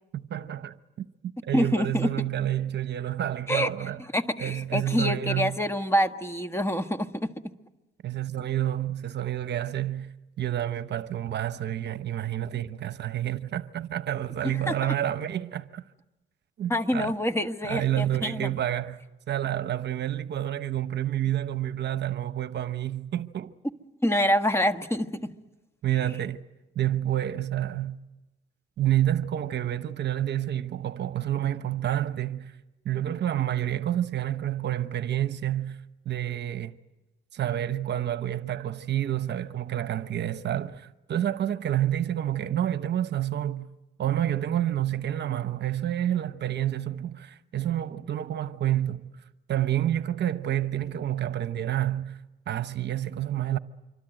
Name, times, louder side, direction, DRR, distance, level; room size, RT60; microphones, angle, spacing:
voice 1, 0.1-1.1 1.4-4.0 4.4-5.5 8.0-15.8 16.6-17.1 17.6-19.0 19.3-23.5 25.8-26.4 26.7-28.0 28.8-32.5 32.8-35.8 36.0-36.8 37.3-43.6 44.0-49.1 49.5-52.2 52.5-53.6, right 11 dB, 60° right, 1.0 m, -29 dB
voice 2, 1.5-2.1 3.5-3.7 4.1-7.3 14.4-14.9 16.7-18.5 24.0-25.3, equal, 15° left, 1.5 m, -26 dB
26.0 x 24.5 x 9.1 m
cardioid pair, 90°, 20 cm